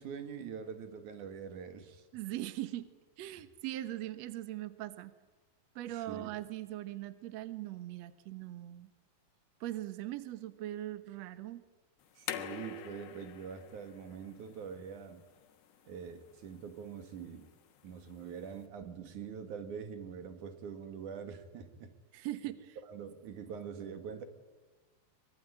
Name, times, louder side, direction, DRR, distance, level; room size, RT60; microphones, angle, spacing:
voice 1, 0.0-2.1 5.9-6.3 12.2-15.3 15.9-17.5 17.8-21.9 22.9-24.2, right 7 dB, 55° right, 9 dB, 3.0 m, -44 dB
voice 2, 2.1-2.9 3.2-5.1 5.7-8.9 9.6-11.6 22.1-22.8, right 14 dB, 85° right, 13 dB, 1.4 m, -40 dB
sound 1, 12.0-18.7, left 11 dB, 85° left, 3.5 m, -47 dB
24.0 x 23.0 x 9.8 m, 1.2 s
omnidirectional pair, 4.7 m